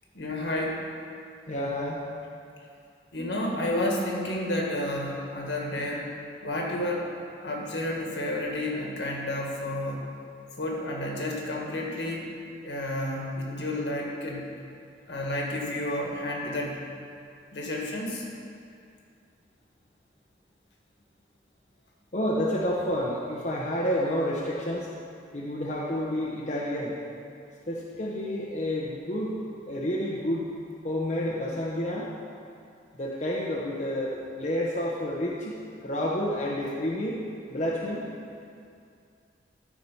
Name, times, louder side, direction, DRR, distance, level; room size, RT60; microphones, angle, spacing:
voice 1, 0.1-0.8 3.1-6.1 6.4-7.1 7.4-10.0 10.6-12.3 12.6-14.4 15.1-16.8 17.5-18.2, left 1 dB, 65° left, -2 dB, 1.7 m, -30 dB
voice 2, 1.5-2.0 22.1-24.9 25.3-27.0 27.7-29.4 29.7-30.4 30.8-32.1 33.0-35.5 35.8-37.2 37.5-38.0, equal, 40° left, -5 dB, 0.9 m, -29 dB
14.0 x 4.8 x 5.6 m, 2.4 s
head